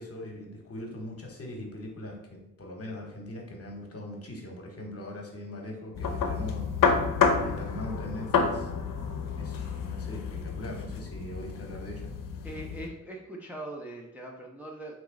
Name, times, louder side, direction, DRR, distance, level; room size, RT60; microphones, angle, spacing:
voice 1, 0.0-6.8 7.4-8.7 9.4-12.1, left 1 dB, 45° left, 1 dB, 0.9 m, -41 dB
sound 1, 5.9-12.9, left 5 dB, 75° left, 0.5 m, -29 dB
voice 2, 12.4-15.0, right 1 dB, 5° right, -2 dB, 0.6 m, -41 dB
3.0 x 2.9 x 3.6 m, 0.83 s
cardioid pair, 75°, 33 cm